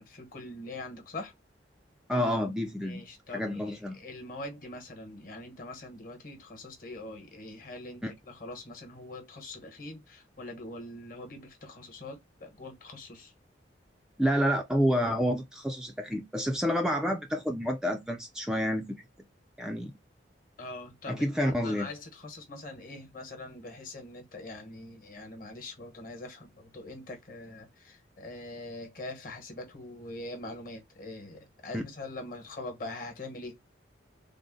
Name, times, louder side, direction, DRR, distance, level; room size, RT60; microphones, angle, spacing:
voice 1, 0.0-1.3 2.8-13.3 20.6-33.6, left 2 dB, 45° left, 1.1 m, -43 dB
voice 2, 2.1-3.0 3.3-4.0 8.0-8.1 14.2-19.0 19.6-19.9 21.1-21.9 31.7-31.8, equal, 5° right, 0.3 m, -29 dB
3.6 x 2.0 x 3.7 m
head